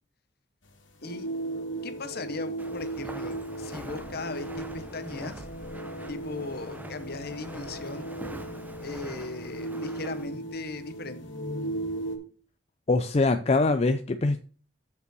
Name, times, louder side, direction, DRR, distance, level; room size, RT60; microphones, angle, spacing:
sound 1, 0.6-12.2, right 2 dB, 85° left, 2.1 m, -37 dB
voice 1, 1.8-5.4 6.1-8.1 8.8-11.2, left 3 dB, 55° left, 1.0 m, -38 dB
Walk footsteps, 2.6-10.3, right 1 dB, 10° right, 0.7 m, -44 dB
voice 2, 12.9-14.4, left 3 dB, 35° left, 0.4 m, -23 dB
6.9 x 5.6 x 6.2 m
head